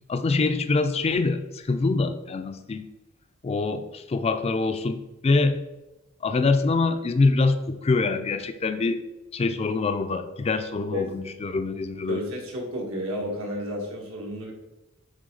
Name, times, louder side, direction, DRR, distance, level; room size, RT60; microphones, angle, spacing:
voice 1, 0.1-2.8 3.4-5.6 6.2-9.0 9.3-12.2, left 3 dB, 30° left, 9 dB, 0.4 m, -24 dB
voice 2, 10.9-11.2 12.1-14.5, equal, 85° right, -1 dB, 1.7 m, -32 dB
8.8 x 3.5 x 3.8 m, 1.0 s
head